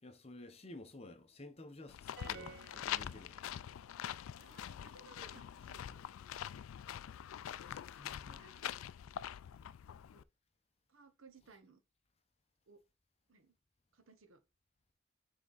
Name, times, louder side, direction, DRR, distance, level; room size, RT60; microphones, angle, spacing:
voice 1, 0.0-3.4 7.7-8.4, left 2 dB, 30° left, 0.7 m, -53 dB
sound 1, 1.9-10.2, left 10 dB, 75° left, 0.3 m, -44 dB
sound 2, 2.2-3.9, right 6 dB, 50° right, 0.4 m, -54 dB
voice 2, 4.4-6.0 8.3-8.8 10.1-10.2 10.9-11.8 12.7-12.8 13.3-13.5 13.9-14.4, right 4 dB, 75° right, 1.1 m, -61 dB
7.6 x 3.6 x 4.0 m
head